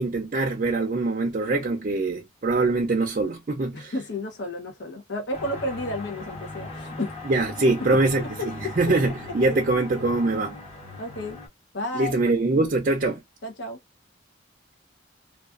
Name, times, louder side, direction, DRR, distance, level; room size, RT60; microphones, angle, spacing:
voice 1, 0.0-3.9 7.2-10.6 11.9-13.2, right 2 dB, 45° right, 0.4 m, -23 dB
voice 2, 3.7-7.1 8.2-8.3 9.4-9.6 11.0-11.4 11.7-12.2 13.4-13.8, left 1 dB, 65° left, 0.7 m, -32 dB
sound 1, 5.3-11.5, left 3 dB, 35° left, 1.1 m, -39 dB
2.4 x 2.3 x 2.3 m
head